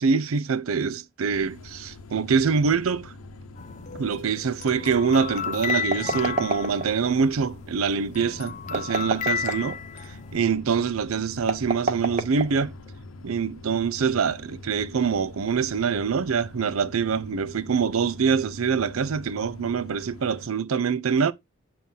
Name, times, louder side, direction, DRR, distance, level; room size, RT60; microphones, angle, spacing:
voice 1, 0.0-3.1 3.9-9.8 10.3-12.7 13.2-21.3, right 5 dB, 90° right, 0.5 m, -25 dB
sound 1, 1.3-20.5, left 2 dB, 85° left, 0.8 m, -44 dB
sound 2, 3.6-7.6 7.9-10.4, left 7 dB, 35° left, 0.4 m, -33 dB
sound 3, 5.6-7.1 8.6-9.8 11.4-12.9, right 3 dB, 35° right, 0.7 m, -28 dB
7.4 x 2.5 x 5.4 m
head